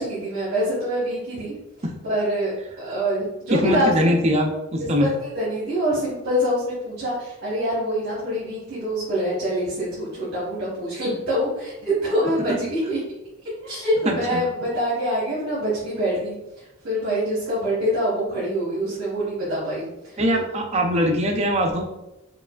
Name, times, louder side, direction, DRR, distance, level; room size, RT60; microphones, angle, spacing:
voice 1, 0.0-1.5 2.0-4.1 4.8-13.0 13.6-19.8, equal, 50° right, -8 dB, 1.1 m, -25 dB
voice 2, 3.5-5.1 12.5-12.6 14.1-14.5 20.2-21.8, equal, 30° right, 2 dB, 0.5 m, -22 dB
4.6 x 2.4 x 2.3 m, 0.94 s
head